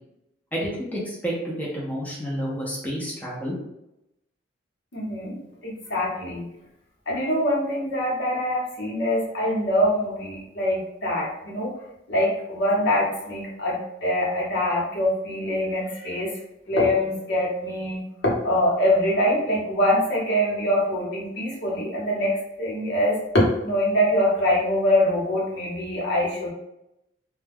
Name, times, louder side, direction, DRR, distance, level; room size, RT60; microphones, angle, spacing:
voice 1, 0.5-3.5, equal, 10° left, -6 dB, 0.5 m, -30 dB
voice 2, 4.9-6.5 7.1-11.7 12.1-16.3 16.7-26.5, left 1 dB, 60° left, -4 dB, 0.9 m, -24 dB
2.2 x 2.2 x 3.3 m, 0.87 s
head